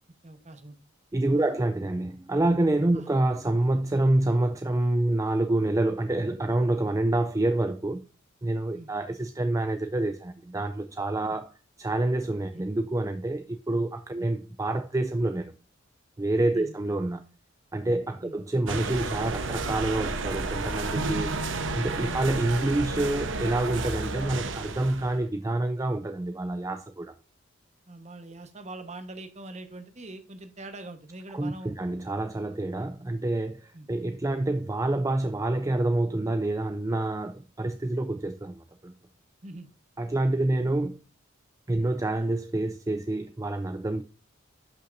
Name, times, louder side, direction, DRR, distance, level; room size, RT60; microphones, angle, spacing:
voice 1, 0.2-0.8 1.3-1.6 2.9-3.1 8.7-8.9 12.5-12.6 14.2-14.3 16.5-16.8 18.2-18.4 22.1-22.2 27.9-31.8 33.7-33.9 34.3-34.5 39.4-39.7, right 2 dB, 35° right, 1.2 m, -43 dB
voice 2, 1.1-8.0 8.4-11.5 11.8-15.5 16.2-17.2 17.7-21.3 21.7-27.1 31.3-38.9 40.0-41.0 41.7-44.0, right 2 dB, 15° right, 0.4 m, -27 dB
sound 1, 18.7-25.2, right 3 dB, 65° right, 1.0 m, -31 dB
12.0 x 5.6 x 2.6 m
head